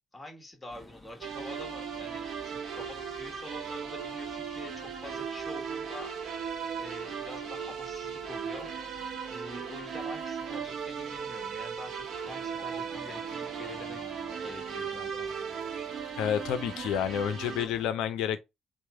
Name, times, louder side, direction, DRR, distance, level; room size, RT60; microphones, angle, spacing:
voice 1, 0.1-14.0 14.4-15.3, left 2 dB, 15° left, 1.4 m, -47 dB
sound 1, 0.7-17.9, left 1 dB, ahead, 1.0 m, -54 dB
sound 2, 1.2-17.7, right 7 dB, 70° right, 0.8 m, -37 dB
voice 2, 16.2-18.4, left 9 dB, 80° left, 0.4 m, -29 dB
3.1 x 2.1 x 3.5 m
supercardioid pair, 65°, 0 cm